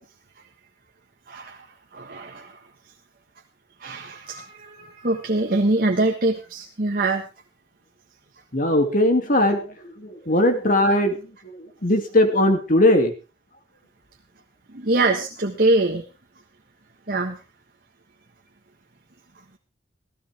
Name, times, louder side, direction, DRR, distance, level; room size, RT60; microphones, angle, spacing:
voice 1, 1.3-1.7 1.9-2.6 3.8-7.3 14.7-16.0 17.1-17.4, right 2 dB, 50° right, 3 dB, 1.5 m, -23 dB
voice 2, 8.5-13.1, left 1 dB, 45° left, 5 dB, 2.6 m, -20 dB
16.0 x 15.5 x 3.5 m, 0.32 s
head